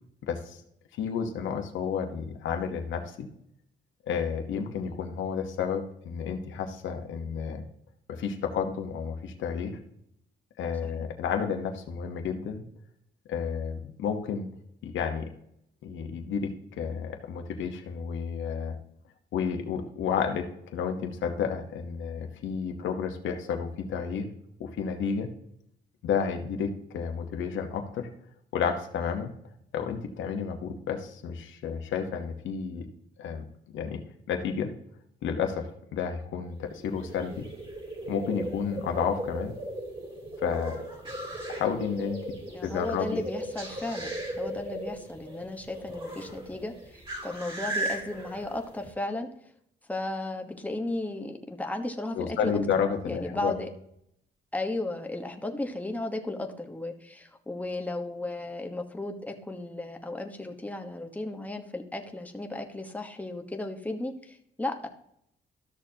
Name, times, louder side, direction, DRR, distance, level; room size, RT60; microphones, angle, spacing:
voice 1, 0.3-0.6 0.9-3.3 4.1-7.6 8.1-9.8 10.6-12.6 13.3-14.5 14.8-15.3 15.8-18.7 19.3-20.4 20.7-24.3 24.6-25.3 26.0-28.1 28.5-29.3 29.7-32.9 33.2-33.4 33.7-34.0 34.3-34.7 35.2-37.4 38.1-39.5 40.4-40.8 41.5-42.2 42.6-43.2 52.1-53.5, left 6 dB, 90° left, 4 dB, 1.1 m, -31 dB
sound 1, 36.5-48.9, right 1 dB, 25° right, 2.7 m, -37 dB
voice 2, 42.5-49.3 49.9-52.8 53.1-53.7 54.5-64.9, left 2 dB, 10° left, 4 dB, 1.2 m, -35 dB
13.0 x 6.6 x 2.8 m, 0.74 s
cardioid pair, 100°, 19 cm